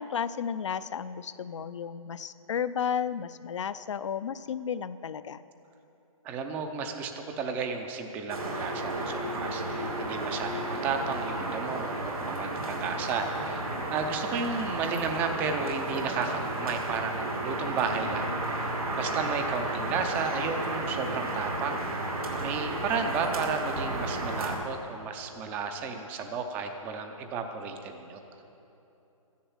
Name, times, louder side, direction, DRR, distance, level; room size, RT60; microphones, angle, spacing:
voice 1, 0.0-5.4, left 7 dB, 55° left, 15 dB, 0.5 m, -33 dB
voice 2, 6.2-13.6 13.9-18.3 19.0-21.8 22.4-28.2, right 5 dB, 10° right, 6 dB, 0.5 m, -33 dB
sound 1, 8.3-24.6, right 2 dB, 85° right, 2.6 m, -33 dB
12.5 x 10.5 x 7.2 m, 3.0 s
hypercardioid pair, 160°, 18 cm